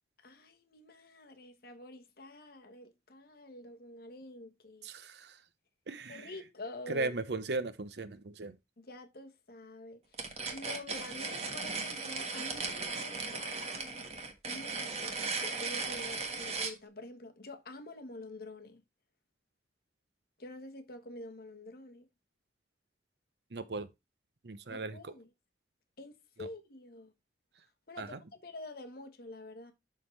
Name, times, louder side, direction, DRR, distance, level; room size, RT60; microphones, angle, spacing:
voice 1, 0.2-4.9 6.1-7.1 8.8-10.2 10.5-14.0 14.5-18.8 20.4-22.1 24.7-25.2 26.0-27.1 27.9-29.7, left 2 dB, 55° left, 1.2 m, -47 dB
voice 2, 4.8-5.4 5.9-6.4 6.9-8.6 23.5-23.9 24.4-25.1 26.4-26.5 27.6-27.7 28.0-28.2, right 3 dB, 70° right, 0.7 m, -38 dB
sound 1, 10.1-16.8, right 4 dB, 35° right, 1.5 m, -37 dB
11.0 x 3.8 x 3.2 m
head